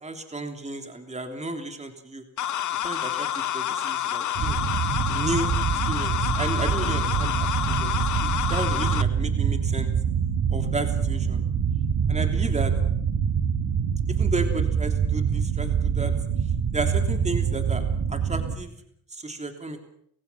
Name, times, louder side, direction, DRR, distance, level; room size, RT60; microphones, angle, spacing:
voice 1, 0.0-2.2 2.8-4.6 5.1-5.6 5.9-7.9 8.2-9.9 10.5-11.4 12.1-12.7 14.1-16.1 16.7-17.8 18.1-18.7 19.1-19.8, right 2 dB, 15° right, 5 dB, 3.2 m, -33 dB
sound 1, 2.4-9.0, left 11 dB, 50° left, 1.0 m, -28 dB
sound 2, 4.4-18.6, right 7 dB, 60° right, 2.6 m, -25 dB
30.0 x 16.0 x 5.8 m, 0.69 s
supercardioid pair, 65°, 38 cm